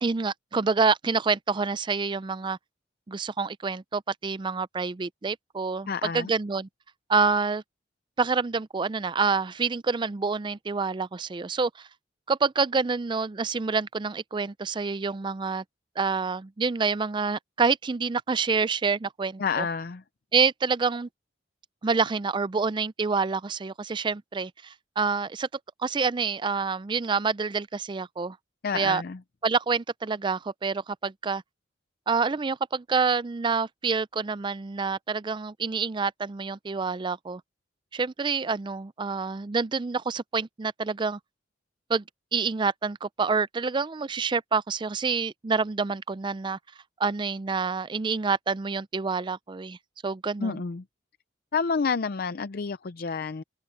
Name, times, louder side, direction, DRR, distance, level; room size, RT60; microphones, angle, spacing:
voice 1, 0.0-2.6 3.1-6.7 7.1-7.6 8.2-11.9 12.3-15.6 16.0-19.7 20.3-21.1 21.8-25.5 25.8-28.4 28.7-29.0 29.4-31.4 32.1-37.4 37.9-41.2 41.9-42.0 42.3-46.6 47.0-49.8 50.0-50.6, right 4 dB, 25° right, 0.4 m, -27 dB
voice 2, 5.9-6.3 19.4-20.0 28.6-29.2 50.4-50.8 51.5-53.4, left 5 dB, 50° left, 0.5 m, -29 dB
open air
head